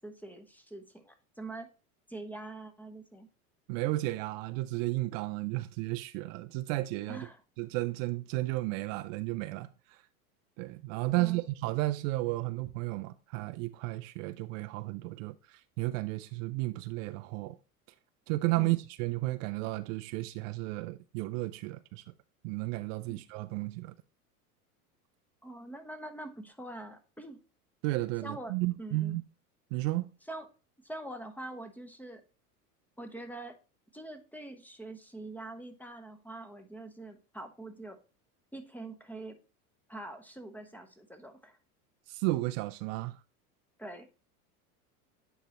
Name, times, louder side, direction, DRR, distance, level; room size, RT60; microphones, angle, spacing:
voice 1, 0.0-1.7 2.1-3.3 7.1-7.4 11.1-11.4 18.6-18.8 23.1-23.2 25.4-27.4 28.2-29.2 30.3-30.5 30.8-32.2 33.0-33.5 33.9-38.0 38.5-39.4 39.9-41.6 43.8-44.1, right 2 dB, 5° left, 0.9 m, -44 dB
voice 2, 3.7-7.3 7.6-10.0 10.6-17.6 18.3-22.0 22.4-23.9 27.8-29.2 29.7-30.1 42.1-43.2, right 19 dB, 55° right, 0.6 m, -33 dB
9.2 x 4.0 x 2.8 m
hypercardioid pair, 90°, 46 cm